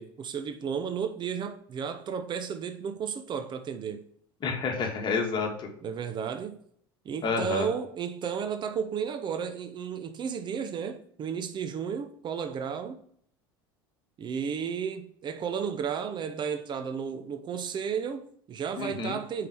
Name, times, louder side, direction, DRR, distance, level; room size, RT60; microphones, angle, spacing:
voice 1, 0.0-4.0 5.8-6.6 7.0-13.0 14.2-19.5, right 7 dB, 40° right, 0.7 m, -33 dB
voice 2, 4.4-5.7 7.2-7.7 18.8-19.2, left 5 dB, 40° left, 1.8 m, -29 dB
5.3 x 4.7 x 6.2 m
hypercardioid pair, 85°, 12 cm